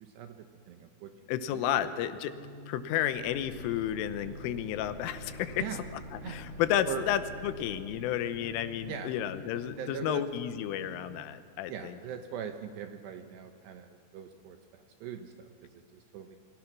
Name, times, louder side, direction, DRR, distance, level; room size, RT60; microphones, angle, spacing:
voice 1, 0.0-1.1 1.5-1.9 5.6-5.8 6.2-6.4 6.9-7.0 8.9-9.1 9.8-10.3 11.7-16.4, right 9 dB, 75° right, 6 dB, 2.6 m, -41 dB
voice 2, 1.3-2.3 2.7-5.6 6.3-11.9, left 11 dB, 80° left, 11 dB, 3.4 m, -32 dB
sound 1, 2.2-10.8, left 2 dB, 40° right, 4.1 m, -46 dB
28.5 x 24.0 x 6.0 m, 2.1 s
omnidirectional pair, 5.9 m